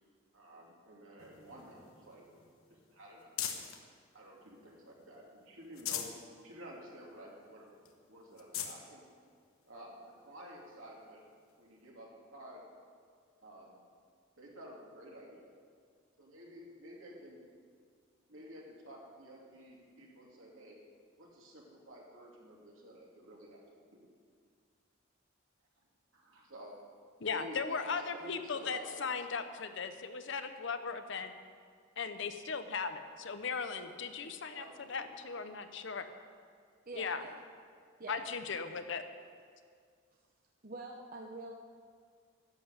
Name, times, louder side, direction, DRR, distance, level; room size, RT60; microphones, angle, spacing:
voice 1, 0.3-2.2 2.7-3.5 4.1-6.1 6.4-7.8 8.1-9.0 9.7-10.0 10.2-11.2 11.6-12.6 13.4-13.8 14.4-15.5 16.2-17.4 18.3-20.8 21.2-23.6 23.9-24.1 26.1-26.7 27.3-29.2 34.2-35.5, equal, 75° right, -3 dB, 2.8 m, -51 dB
sound 1, 1.2-3.9 4.4-5.1 5.5-6.2 6.7-6.8 7.1-7.2 7.9-8.0 8.3-8.8 9.6-9.7 11.5-11.6, left 9 dB, 85° left, 1.1 m, -42 dB
voice 2, 27.2-31.3 32.0-36.1 37.0-37.2 38.1-39.1, left 5 dB, 60° left, 9 dB, 0.8 m, -38 dB
voice 3, 36.9-37.3 38.0-38.2 40.6-41.5, right 2 dB, 45° right, 1 dB, 0.8 m, -45 dB
11.5 x 7.7 x 8.0 m, 2.1 s
head